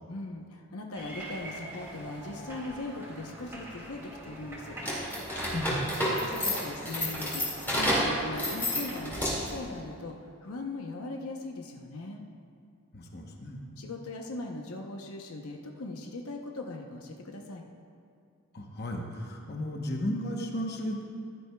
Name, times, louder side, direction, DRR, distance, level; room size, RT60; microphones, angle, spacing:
voice 1, 0.1-4.8 5.9-7.5 7.7-12.2 13.8-17.7, left 2 dB, 80° left, 2 dB, 0.8 m, -39 dB
sound 1, 0.9-9.1, right 1 dB, 10° right, 1.8 m, -45 dB
sound 2, 4.8-9.6, equal, 10° left, 2.0 m, -30 dB
voice 2, 5.5-6.0 12.9-13.6 18.5-21.0, left 1 dB, 45° left, 1 dB, 0.9 m, -34 dB
15.0 x 11.0 x 2.3 m, 2.4 s
head